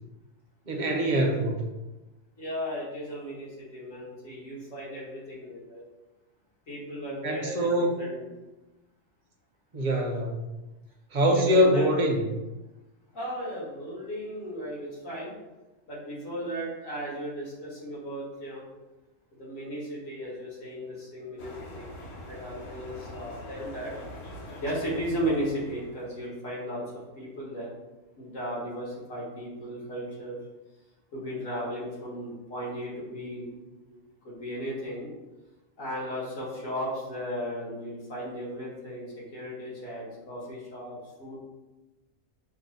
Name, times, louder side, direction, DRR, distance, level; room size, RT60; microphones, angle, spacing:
voice 1, 0.7-1.7 7.2-7.9 9.7-10.4 11.1-12.4, equal, 45° right, 1 dB, 0.7 m, -24 dB
voice 2, 2.4-5.8 6.7-8.3 11.3-11.9 13.1-15.3 15.9-18.6 19.4-21.9 22.3-23.9 24.6-27.7 28.2-30.4 31.1-33.6 33.9-35.1 35.8-41.4, equal, 80° left, -6 dB, 1.9 m, -35 dB
sound 1, 21.4-26.2, left 1 dB, 60° left, 1.0 m, -43 dB
5.7 x 2.1 x 4.1 m, 1.1 s
omnidirectional pair, 1.3 m